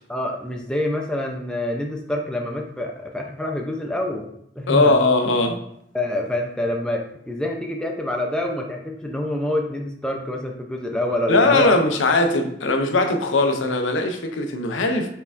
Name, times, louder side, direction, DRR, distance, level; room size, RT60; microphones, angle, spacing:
voice 1, 0.1-4.3 4.6-5.0 5.9-11.9, left 1 dB, 5° left, 1 dB, 0.4 m, -26 dB
voice 2, 4.7-5.6 11.3-15.1, left 2 dB, 90° left, 5 dB, 0.6 m, -19 dB
4.4 x 3.5 x 2.4 m, 0.72 s
head